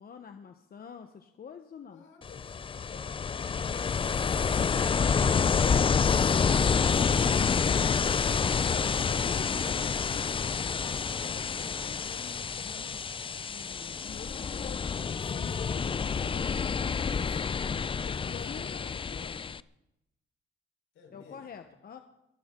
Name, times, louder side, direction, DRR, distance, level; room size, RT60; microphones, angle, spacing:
voice 1, 0.0-2.0 9.0-13.0 13.5-16.0 18.0-19.6 21.1-22.0, left 7 dB, 50° left, 7 dB, 1.1 m, -47 dB
voice 2, 1.9-5.4 6.2-9.7 14.5-16.6 16.9-19.1 20.9-21.5, left 5 dB, 80° left, 3 dB, 4.4 m, -53 dB
Ocean, 2.2-19.6, left 6 dB, 25° left, 0.4 m, -28 dB
23.0 x 15.0 x 3.8 m, 0.90 s
cardioid pair, 90°, 20 cm